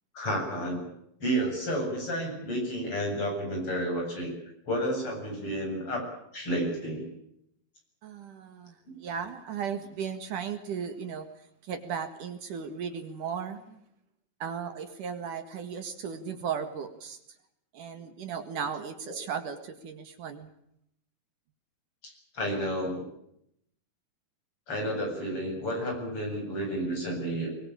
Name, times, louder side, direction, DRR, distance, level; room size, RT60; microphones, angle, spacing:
voice 1, 0.1-0.8 1.2-4.3 4.7-6.1 6.3-7.1 22.0-23.1 24.7-27.5, equal, 35° left, 2 dB, 8.7 m, -31 dB
voice 2, 8.0-11.3 11.6-13.8 14.4-17.2 17.7-20.5, right 7 dB, 65° right, 8 dB, 3.2 m, -36 dB
23.0 x 22.5 x 8.8 m, 0.75 s
omnidirectional pair, 4.1 m